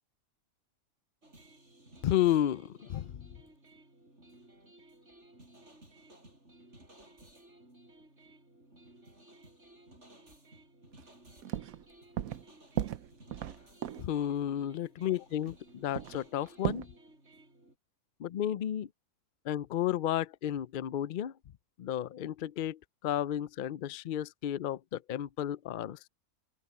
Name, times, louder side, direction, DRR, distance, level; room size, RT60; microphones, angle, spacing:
sound 1, 1.2-17.7, right 1 dB, 50° right, 8.0 m, -57 dB
voice 1, 2.0-3.3 14.0-16.9 18.2-18.9 19.4-21.3 21.8-26.1, left 11 dB, 75° left, 0.4 m, -32 dB
sound 2, 11.0-11.1 11.4-11.8 12.2-12.5 12.8-14.1 15.1-15.2 15.4-15.5 15.9-16.9, right 12 dB, 80° right, 1.1 m, -36 dB
open air
omnidirectional pair, 1.5 m